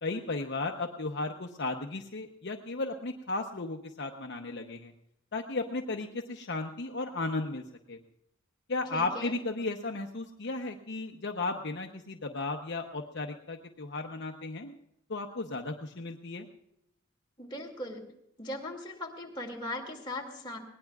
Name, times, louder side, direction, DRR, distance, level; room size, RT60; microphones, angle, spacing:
voice 1, 0.0-4.9 5.3-8.0 8.7-14.8 15.1-16.5, left 3 dB, 55° left, 3 dB, 0.8 m, -35 dB
voice 2, 8.9-9.3 17.4-18.1 18.4-20.6, left 1 dB, 20° left, -1 dB, 2.4 m, -39 dB
20.5 x 18.5 x 2.4 m, 0.79 s
head